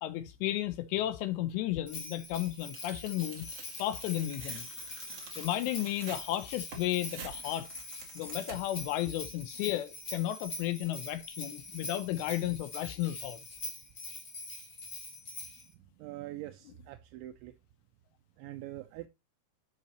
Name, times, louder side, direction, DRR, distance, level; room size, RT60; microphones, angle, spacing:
voice 1, 0.0-3.5 3.8-4.7 5.4-7.7 8.2-13.4, left 13 dB, 90° left, 2.4 m, -33 dB
Bell, 1.9-15.7, left 2 dB, 35° left, 1.9 m, -44 dB
Tearing, 2.7-8.9, right 4 dB, 45° right, 2.2 m, -48 dB
voice 2, 16.0-17.5 18.4-19.1, right 15 dB, 85° right, 2.7 m, -43 dB
12.5 x 5.7 x 2.9 m
omnidirectional pair, 5.7 m